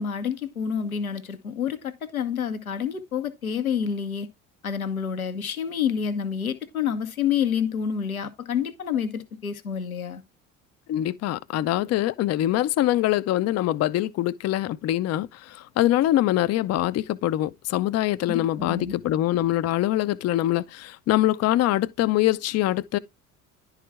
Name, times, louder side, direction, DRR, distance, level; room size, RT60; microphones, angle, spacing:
voice 1, 0.0-4.3 4.6-10.2 18.3-18.9, left 7 dB, 85° left, 0.9 m, -28 dB
voice 2, 10.9-23.0, left 14 dB, 40° left, 0.6 m, -24 dB
11.0 x 4.8 x 3.5 m
figure-of-eight pair, 60°, 41 cm